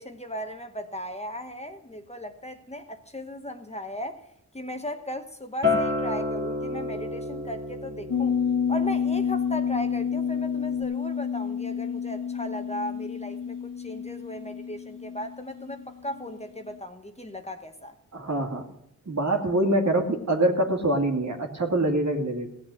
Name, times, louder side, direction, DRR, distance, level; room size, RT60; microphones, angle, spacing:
voice 1, 0.0-4.3 4.5-8.4 8.7-18.0, equal, 20° left, 1.1 m, -37 dB
Acoustic guitar, 5.6-10.8, left 3 dB, 35° right, 2.6 m, -31 dB
sound 1, 8.1-16.4 16.7-16.8, left 7 dB, 75° left, 1.1 m, -29 dB
voice 2, 18.1-18.7 19.1-22.5, right 1 dB, 60° right, 2.3 m, -24 dB
16.5 x 7.3 x 6.4 m
cardioid pair, 60°, 32 cm